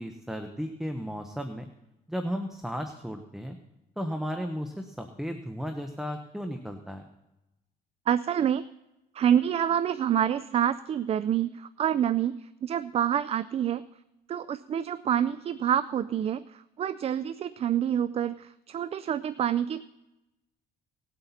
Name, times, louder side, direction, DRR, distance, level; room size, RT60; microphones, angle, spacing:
voice 1, 0.0-1.7 2.1-3.6 4.0-7.0, equal, ahead, 6 dB, 0.9 m, -34 dB
voice 2, 8.1-8.7 9.1-13.9 14.3-19.8, right 9 dB, 35° right, 14 dB, 0.4 m, -27 dB
19.0 x 8.0 x 4.2 m, 0.96 s
cardioid pair, 110°, 17 cm